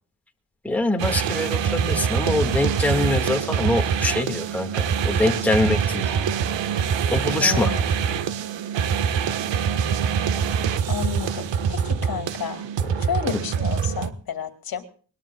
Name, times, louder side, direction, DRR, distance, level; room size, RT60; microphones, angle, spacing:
voice 1, 0.6-6.1 7.1-7.7 12.8-12.9, left 2 dB, 5° left, 2 dB, 1.9 m, -24 dB
sound 1, 1.0-14.1, right 7 dB, 85° right, 1.4 m, -24 dB
voice 2, 7.4-7.8 10.9-12.6 13.1-14.8, left 8 dB, 55° left, 8 dB, 2.5 m, -31 dB
22.0 x 21.0 x 2.4 m, 0.43 s
cardioid pair, 155°, 43 cm